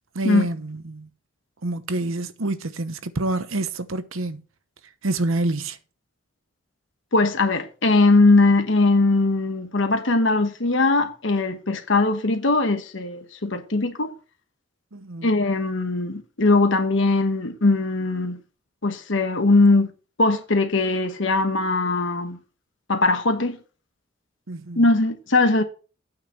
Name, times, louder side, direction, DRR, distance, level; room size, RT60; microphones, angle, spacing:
voice 1, 0.1-1.1 1.6-4.4 5.0-5.8 14.9-15.3 24.5-24.8, right 2 dB, 85° right, 1.0 m, -27 dB
voice 2, 7.1-14.1 15.2-18.4 18.8-19.9 20.2-22.4 22.9-23.6 24.8-25.6, left 2 dB, 70° left, 1.2 m, -20 dB
8.9 x 4.9 x 7.1 m
head